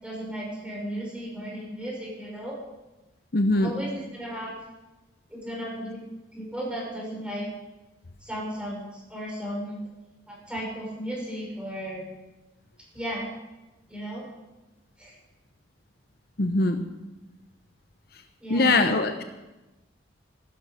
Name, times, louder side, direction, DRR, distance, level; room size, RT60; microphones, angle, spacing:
voice 1, 0.0-2.6 3.6-4.5 5.3-6.0 6.3-7.4 8.2-9.8 10.3-12.1 12.9-13.3 13.9-14.2 15.0-15.1 18.4-18.7, equal, 5° right, -3 dB, 5.3 m, -35 dB
voice 2, 3.3-3.7 16.4-16.8 18.5-19.2, left 2 dB, 55° left, 7 dB, 0.8 m, -22 dB
15.5 x 12.5 x 5.0 m, 1.1 s
head